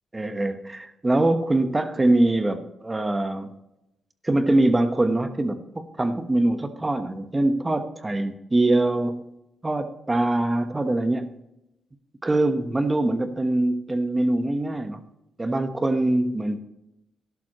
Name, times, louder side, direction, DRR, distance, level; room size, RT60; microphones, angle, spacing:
voice 1, 0.1-3.5 4.2-9.2 9.6-11.3 12.2-15.0 15.4-16.6, right 2 dB, 20° right, 8 dB, 1.2 m, -23 dB
12.0 x 11.5 x 3.1 m, 0.85 s
cardioid pair, 70°, 0 cm